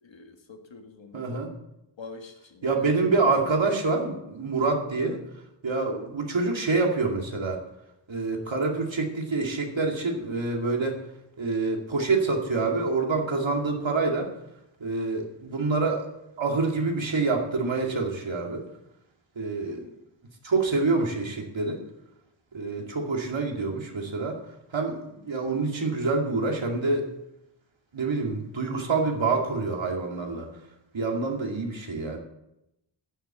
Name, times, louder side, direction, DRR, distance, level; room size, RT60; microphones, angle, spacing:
voice 1, 0.0-1.4 2.0-3.7 5.0-5.2 5.9-6.1 19.6-20.0 22.7-22.9 25.1-25.3, left 4 dB, 70° left, 5 dB, 1.8 m, -46 dB
voice 2, 1.1-1.5 2.6-5.2 5.6-7.6 8.1-11.0 11.4-14.3 14.8-16.0 16.4-18.6 19.4-19.8 20.4-21.8 22.5-24.4 24.7-27.0 27.9-30.5 30.9-32.2, right 3 dB, 70° right, 1 dB, 2.5 m, -26 dB
11.0 x 7.2 x 8.2 m, 0.86 s
wide cardioid pair, 60°, 47 cm